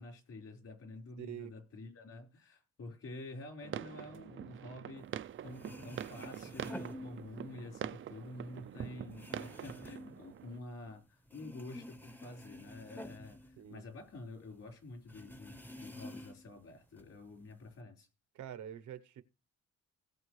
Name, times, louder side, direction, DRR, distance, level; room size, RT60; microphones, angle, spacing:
voice 1, 0.0-18.1, left 2 dB, 55° left, 4.5 m, -49 dB
voice 2, 1.2-1.5 8.6-9.1 13.6-13.8 18.3-19.2, right 10 dB, 70° right, 1.0 m, -47 dB
sound 1, 3.6-10.6, right 10 dB, 45° right, 0.5 m, -45 dB
sound 2, 5.2-5.3 5.5-7.7 8.0-11.0 11.3-14.3 14.5-14.6 15.1-16.6 17.0-17.7, left 1 dB, 5° left, 0.9 m, -49 dB
18.0 x 7.3 x 3.2 m
cardioid pair, 90°, 30 cm